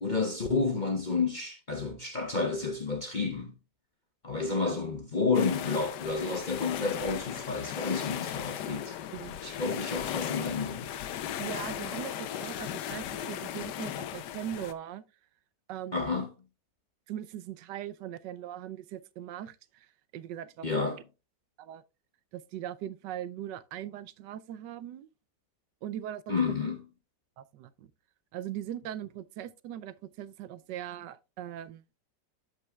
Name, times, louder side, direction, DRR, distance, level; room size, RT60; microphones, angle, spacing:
voice 1, 0.0-3.5 4.2-9.0 9.4-11.0 15.9-16.3 20.6-21.0 26.3-26.8, left 4 dB, 40° left, 0.7 m, -30 dB
sound 1, 5.3-14.7, left 10 dB, 80° left, 1.3 m, -37 dB
voice 2, 11.4-15.0 15.7-16.3 17.1-19.9 20.1-21.0 21.6-21.8 22.3-25.1 25.8-26.6 27.4-27.9 28.3-31.8, right 11 dB, 85° right, 1.3 m, -40 dB
13.0 x 5.4 x 2.3 m
omnidirectional pair, 1.9 m